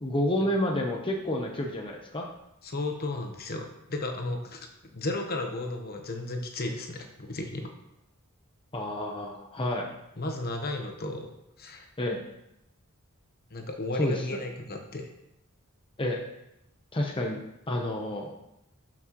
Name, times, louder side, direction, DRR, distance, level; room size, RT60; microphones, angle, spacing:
voice 1, 0.0-2.3 8.7-9.9 12.0-12.2 14.0-14.4 16.0-16.2 16.9-17.4 17.7-18.3, left 1 dB, 25° left, 0 dB, 0.9 m, -29 dB
voice 2, 2.6-4.7 4.9-7.7 10.2-11.3 11.6-11.9 13.5-15.1, left 2 dB, 45° left, 3 dB, 1.1 m, -34 dB
12.0 x 6.0 x 3.1 m, 0.86 s
head